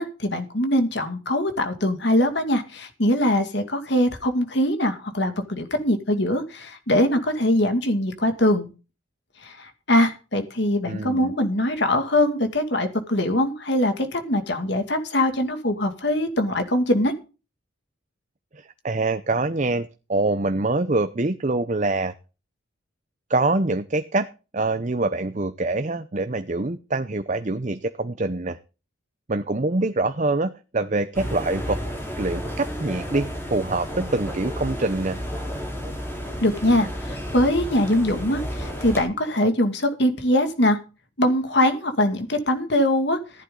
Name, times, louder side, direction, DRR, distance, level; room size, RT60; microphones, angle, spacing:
voice 1, 0.0-8.7 9.4-17.1 36.4-40.8 41.2-43.2, left 1 dB, 55° left, 7 dB, 2.3 m, -22 dB
voice 2, 10.9-11.3 18.5-22.1 23.3-24.3 24.5-28.6 29.3-31.8 32.2-35.2, right 2 dB, 35° right, 10 dB, 0.7 m, -25 dB
sound 1, 31.1-39.0, equal, 10° left, 3.9 m, -32 dB
15.0 x 11.5 x 3.9 m, 0.32 s
head